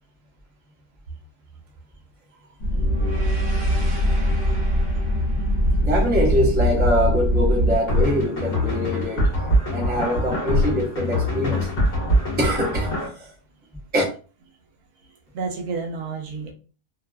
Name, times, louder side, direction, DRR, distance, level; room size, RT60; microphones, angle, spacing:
sound 1, 2.6-7.8, equal, 70° left, 1.0 m, -21 dB
sound 2, 2.7-7.0, right 1 dB, 45° right, 0.8 m, -36 dB
voice 1, 5.8-11.7 12.4-13.3 13.9-14.0, equal, 15° right, 0.4 m, -24 dB
sound 3, 7.9-13.1, left 1 dB, 45° left, 1.0 m, -23 dB
voice 2, 15.3-16.5, right 4 dB, 85° right, 1.1 m, -30 dB
2.8 x 2.2 x 2.2 m
omnidirectional pair, 1.5 m